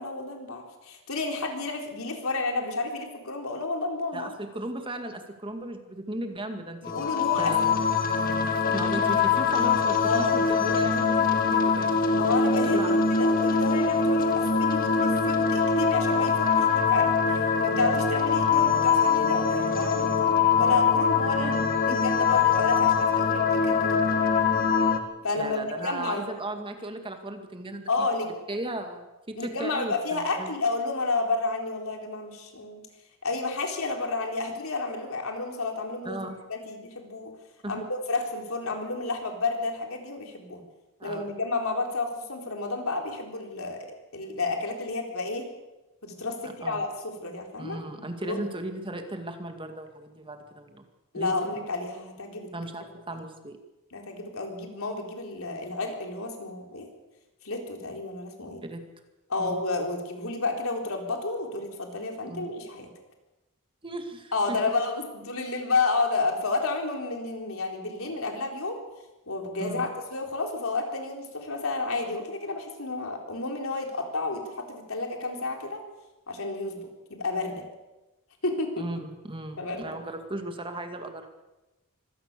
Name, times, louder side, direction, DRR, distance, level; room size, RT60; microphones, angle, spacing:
voice 1, 0.0-4.3 6.9-7.8 10.0-10.3 12.1-24.2 25.2-26.2 27.9-28.3 29.4-32.8 33.2-36.2 36.5-37.3 37.7-40.6 41.0-43.9 44.1-45.5 46.0-47.8 48.3-48.4 51.1-52.5 53.9-56.9 57.4-58.6 59.3-62.9 64.3-68.8 69.3-75.8 76.3-77.7 78.4-78.9 79.6-80.0, left 3 dB, 70° left, 2 dB, 4.0 m, -31 dB
voice 2, 4.1-7.1 7.4-7.7 8.6-12.0 12.6-13.0 21.4-21.5 21.9-22.0 25.3-27.9 28.5-30.5 36.0-36.4 37.6-37.7 41.0-41.3 46.4-46.9 47.6-50.8 51.2-51.4 52.5-53.6 58.6-58.8 59.4-59.6 62.3-62.5 63.8-64.6 68.0-68.1 69.6-69.9 78.8-81.3, right 1 dB, 25° right, 5 dB, 2.1 m, -36 dB
sound 1, 6.8-25.0, left 5 dB, 45° left, 1.9 m, -23 dB
25.0 x 17.0 x 6.9 m, 1.0 s
head